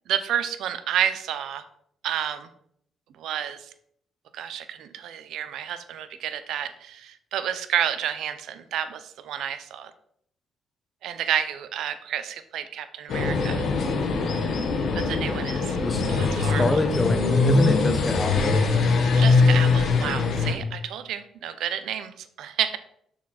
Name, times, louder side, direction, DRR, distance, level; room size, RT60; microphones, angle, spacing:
voice 1, 0.1-1.6 2.0-2.5 3.2-3.7 4.3-9.9 11.0-13.7 15.0-15.8 16.1-16.8 19.2-22.8, right 10 dB, 80° right, 11 dB, 0.5 m, -30 dB
sound 1, 13.1-20.5, left 4 dB, 70° left, 1.1 m, -22 dB
voice 2, 15.8-18.6, left 2 dB, 20° left, 7 dB, 0.8 m, -27 dB
6.2 x 4.2 x 4.2 m, 0.69 s
cardioid pair, 90°, 0 cm